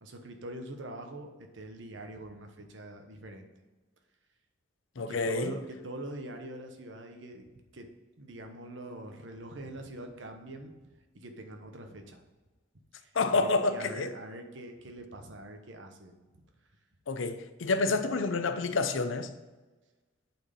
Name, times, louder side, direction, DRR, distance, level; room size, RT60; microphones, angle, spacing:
voice 1, 0.0-3.5 5.0-7.9 8.2-10.7 11.1-12.2 13.0-16.4, right 1 dB, 70° right, 1.1 m, -44 dB
voice 2, 5.0-5.5 13.1-14.1 17.1-19.3, left 3 dB, 80° left, 0.7 m, -28 dB
8.2 x 4.5 x 5.4 m
head